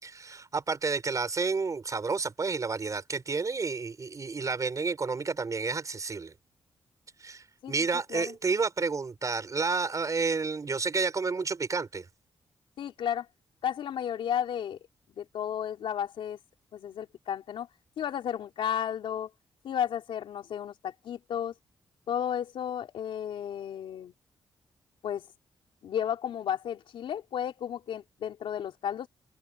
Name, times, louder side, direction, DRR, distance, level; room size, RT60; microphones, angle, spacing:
voice 1, 0.0-6.3 7.2-12.1, right 4 dB, 40° right, 4.4 m, -30 dB
voice 2, 12.8-13.3 13.6-14.8 15.2-16.4 16.7-17.7 18.0-19.3 19.6-21.5 22.1-24.1 25.0-25.2 25.8-29.1, left 9 dB, 80° left, 3.8 m, -33 dB
open air
cardioid pair, 75°, 9 cm